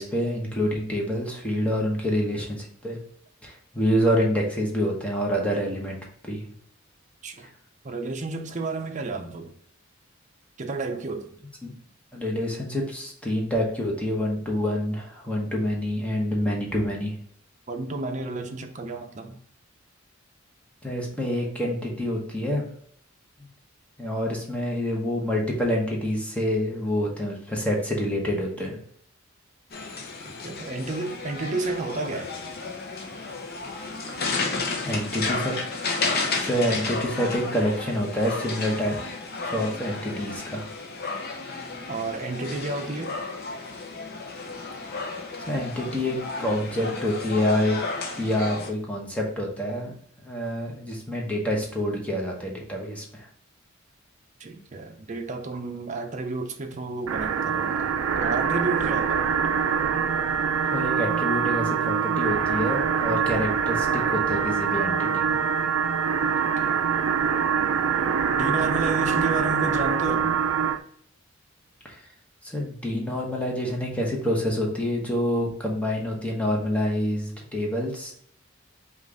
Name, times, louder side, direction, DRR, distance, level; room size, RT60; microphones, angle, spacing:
voice 1, 0.0-3.0 3.4-6.0 6.2-6.4 11.6-11.7 12.1-17.1 20.8-22.7 24.0-28.8 34.9-35.5 36.4-38.9 39.5-40.7 45.5-47.8 48.2-49.9 50.2-53.3 60.7-65.4 71.8-71.9 72.4-78.1, equal, 5° left, 1.0 m, -27 dB
voice 2, 7.8-9.5 10.6-11.3 17.7-19.4 30.3-32.3 41.9-43.2 54.4-59.3 66.4-66.8 68.4-70.4, right 3 dB, 40° right, 0.6 m, -31 dB
sound 1, 29.7-48.7, left 3 dB, 50° left, 0.7 m, -32 dB
sound 2, 57.1-70.8, right 7 dB, 80° right, 0.4 m, -24 dB
5.1 x 2.5 x 3.7 m
head